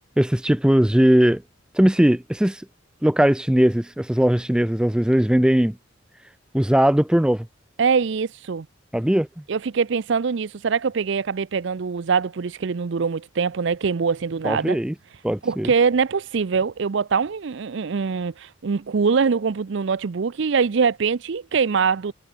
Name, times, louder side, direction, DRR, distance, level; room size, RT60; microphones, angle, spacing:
voice 1, 0.2-1.4 1.7-2.6 3.0-5.8 6.5-7.5 8.9-9.3 14.4-14.9 15.2-15.7, equal, 5° right, 0.4 m, -19 dB
voice 2, 7.8-8.7 9.5-14.8 15.4-22.1, right 5 dB, 60° right, 0.5 m, -23 dB
head